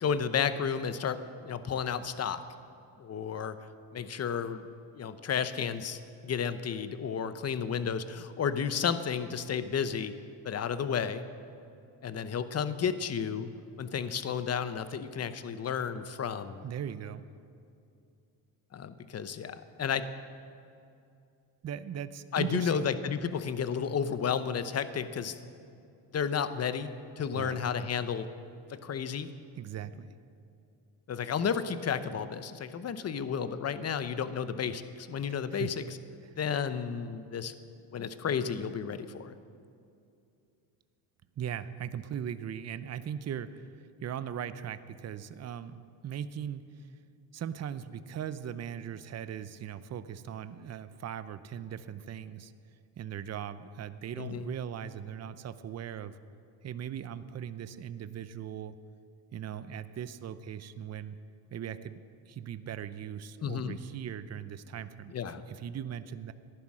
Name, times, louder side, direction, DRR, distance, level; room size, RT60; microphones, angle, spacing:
voice 1, 0.0-2.4 3.0-3.6 3.9-4.7 4.9-10.1 10.4-11.2 12.0-13.5 13.8-16.6 18.7-20.1 22.3-25.4 26.1-28.3 28.7-29.3 31.1-35.8 36.4-37.5 37.9-39.4 54.2-54.5 63.4-63.8 65.1-65.4, left 7 dB, 35° left, 12 dB, 0.8 m, -32 dB
voice 2, 16.6-17.2 21.6-22.8 27.3-27.6 29.6-30.1 35.5-35.8 36.2-36.4 41.4-46.9 47.3-52.5 53.0-56.2 56.6-58.7 59.3-61.2 61.5-62.0 62.3-65.1 65.5-66.3, right 9 dB, 35° right, 13 dB, 0.6 m, -39 dB
14.5 x 11.0 x 6.2 m, 2.5 s
cardioid pair, 95°, 46 cm